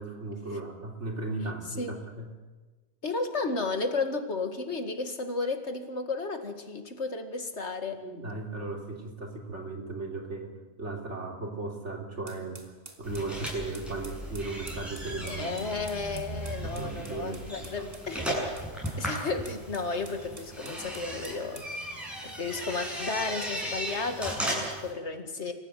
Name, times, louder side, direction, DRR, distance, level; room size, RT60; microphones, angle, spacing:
voice 1, 0.0-2.3 8.0-12.7 13.0-15.5 16.6-17.9, right 3 dB, 75° right, 2 dB, 3.7 m, -36 dB
voice 2, 3.0-8.0 15.3-18.3 19.0-22.0 22.2-25.5, left 3 dB, 70° left, 6 dB, 2.4 m, -33 dB
sound 1, 12.3-21.7, right 3 dB, 55° right, 2.5 m, -50 dB
sound 2, 13.0-24.9, equal, ahead, 8.0 m, -36 dB
25.5 x 15.0 x 9.2 m, 1.3 s
omnidirectional pair, 1.2 m